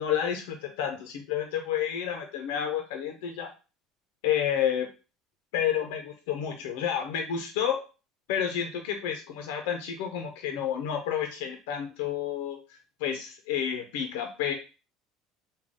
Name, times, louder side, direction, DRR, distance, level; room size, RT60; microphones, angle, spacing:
voice 1, 0.0-3.5 4.2-4.9 5.5-7.8 8.3-14.5, left 9 dB, 90° left, 4 dB, 0.6 m, -30 dB
3.6 x 2.2 x 3.6 m, 0.32 s
cardioid pair, 175°, 0 cm